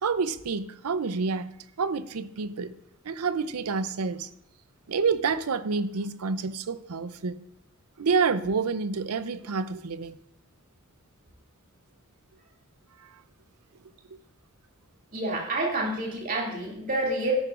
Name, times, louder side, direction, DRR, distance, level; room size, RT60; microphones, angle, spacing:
voice 1, 0.0-1.5 1.8-2.7 3.0-4.3 4.9-7.4 8.0-10.2, right 5 dB, 85° right, 0.6 m, -28 dB
voice 2, 15.1-17.3, right 2 dB, 35° right, 2.5 m, -28 dB
12.5 x 9.7 x 2.5 m
head